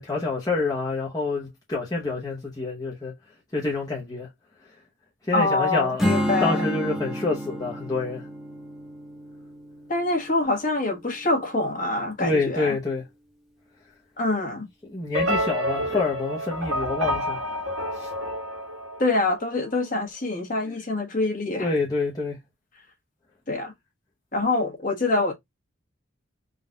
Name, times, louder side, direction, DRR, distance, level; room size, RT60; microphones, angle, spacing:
voice 1, 0.0-3.1 3.5-4.3 5.3-6.1 6.4-8.3 12.2-13.0 14.9-17.4 17.9-18.1 20.7-20.8 21.6-22.4, left 3 dB, 20° left, 0.9 m, -27 dB
voice 2, 5.3-6.7 9.9-12.8 14.2-14.7 15.9-16.0 19.0-21.7 23.5-23.7 24.3-25.3, left 2 dB, 40° left, 1.3 m, -25 dB
Strum, 6.0-11.3, equal, ahead, 1.0 m, -31 dB
sound 1, 15.1-19.5, equal, 80° right, 1.5 m, -28 dB
3.8 x 2.4 x 3.8 m
head